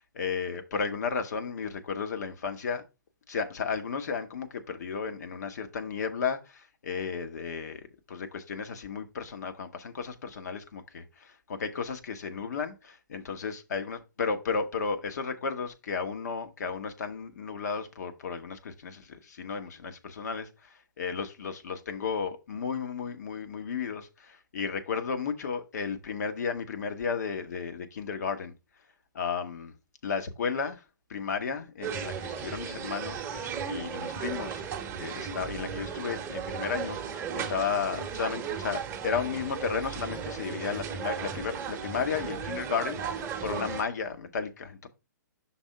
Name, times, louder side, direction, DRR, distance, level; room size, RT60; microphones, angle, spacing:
voice 1, 0.1-2.8 3.3-28.5 29.1-29.7 30.0-30.8 31.1-34.6 35.0-44.9, left 5 dB, 55° left, 1.1 m, -34 dB
sound 1, 31.8-43.8, right 6 dB, 20° right, 0.9 m, -36 dB
5.9 x 3.5 x 5.2 m
figure-of-eight pair, 120°, 11 cm